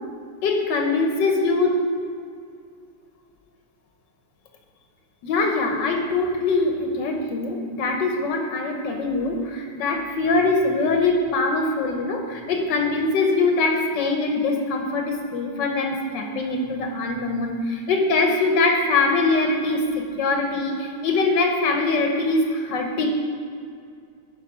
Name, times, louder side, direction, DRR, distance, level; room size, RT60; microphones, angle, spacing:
voice 1, 0.4-1.8 5.2-23.1, left 3 dB, 85° left, 3 dB, 1.6 m, -23 dB
10.0 x 5.4 x 4.8 m, 2.3 s
omnidirectional pair, 1.9 m